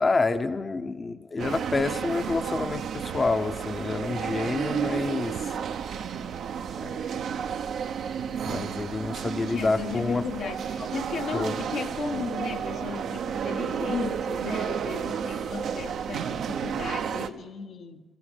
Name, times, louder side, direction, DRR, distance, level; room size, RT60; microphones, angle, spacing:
voice 1, 0.0-5.6 6.8-7.1 8.4-10.2 11.3-11.5, left 3 dB, 35° left, 0.8 m, -28 dB
sound 1, 1.4-17.3, right 7 dB, 75° right, 0.9 m, -32 dB
voice 2, 9.5-18.0, left 6 dB, 70° left, 1.2 m, -35 dB
22.5 x 14.0 x 8.3 m
cardioid pair, 70°, 0 cm